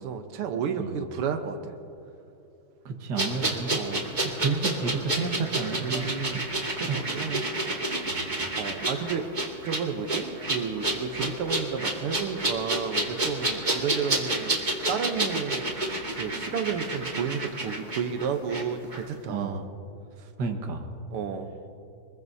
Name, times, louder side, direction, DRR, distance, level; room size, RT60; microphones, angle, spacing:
voice 1, 0.0-1.7 3.8-4.0 5.8-6.4 6.8-7.4 8.6-9.3 9.6-14.6 14.9-15.7 16.2-19.7 20.2-20.3 21.1-21.5, right 6 dB, 85° right, 6 dB, 1.9 m, -32 dB
voice 2, 2.9-3.8 4.4-6.2 6.9-7.0 8.0-8.3 19.3-19.6 20.4-20.9, right 4 dB, 55° right, 3 dB, 1.8 m, -31 dB
sound 1, 3.2-18.6 18.9-19.0, right 2 dB, 25° right, 1.7 m, -30 dB
25.0 x 21.0 x 2.7 m, 2.8 s
omnidirectional pair, 2.4 m